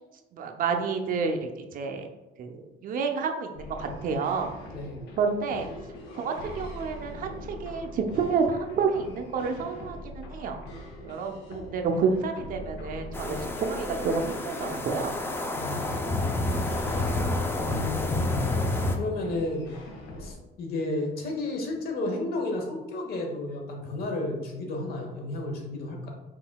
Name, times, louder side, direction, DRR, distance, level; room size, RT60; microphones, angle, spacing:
voice 1, 0.3-2.1 2.4-4.5 5.2-5.7 6.1-10.6 11.0-15.2 16.9-17.3, right 5 dB, 55° right, 4 dB, 0.5 m, -29 dB
sound 1, 3.5-20.3, left 1 dB, 80° left, 0.8 m, -42 dB
voice 2, 4.7-5.0 15.6-15.9 16.9-17.0 17.6-18.3 19.0-19.7 20.2-26.1, left 2 dB, 65° left, 1 dB, 1.1 m, -32 dB
sound 2, 13.1-19.0, left 2 dB, 15° left, 0.4 m, -29 dB
4.6 x 3.7 x 2.2 m, 1.0 s
cardioid pair, 110°, 17 cm